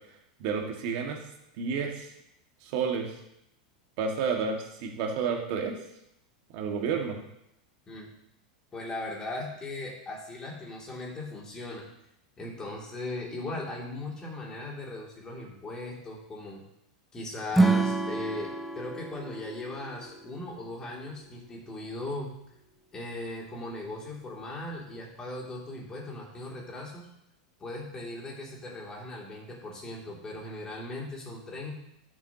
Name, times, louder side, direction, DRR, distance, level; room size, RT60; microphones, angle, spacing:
voice 1, 0.4-1.2 1.6-2.1 2.6-3.1 4.0-5.7 6.5-7.2, right 6 dB, 50° right, 1 dB, 1.9 m, -30 dB
voice 2, 8.7-11.9 12.4-16.6 17.1-22.3 22.9-27.1 27.6-31.8, left 2 dB, 20° left, -3 dB, 2.8 m, -38 dB
Acoustic guitar / Strum, 17.5-20.8, right 3 dB, ahead, 0.6 m, -28 dB
13.5 x 7.2 x 3.0 m, 0.79 s
supercardioid pair, 145°, 4 cm